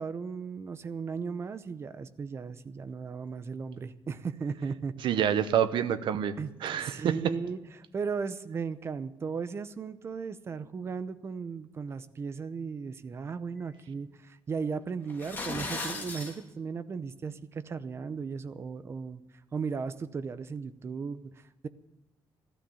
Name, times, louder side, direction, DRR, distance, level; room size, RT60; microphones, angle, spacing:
voice 1, 0.0-4.9 6.4-6.5 6.8-19.2 19.5-21.2, right 5 dB, 30° right, 12 dB, 0.7 m, -36 dB
voice 2, 5.0-6.3 6.6-7.1, right 9 dB, 75° right, 11 dB, 0.9 m, -27 dB
sound 1, 15.1-16.3, left 2 dB, 25° left, 2.7 m, -36 dB
15.5 x 12.5 x 7.0 m, 0.93 s
wide cardioid pair, 175°, 8 cm